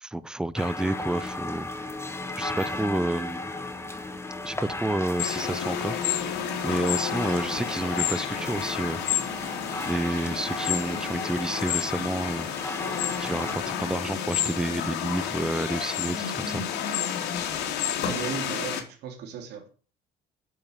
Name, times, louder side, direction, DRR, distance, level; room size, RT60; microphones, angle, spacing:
voice 1, 0.0-1.7 2.4-3.5 4.4-9.0 9.9-12.5 13.2-16.6, right 1 dB, 5° right, 0.6 m, -30 dB
sound 1, 0.6-13.6, left 2 dB, 15° left, 2.0 m, -35 dB
sound 2, 5.2-18.8, left 9 dB, 90° left, 3.4 m, -30 dB
voice 2, 18.0-19.7, right 7 dB, 75° right, 3.5 m, -36 dB
10.5 x 7.8 x 8.9 m
cardioid pair, 110°, 17 cm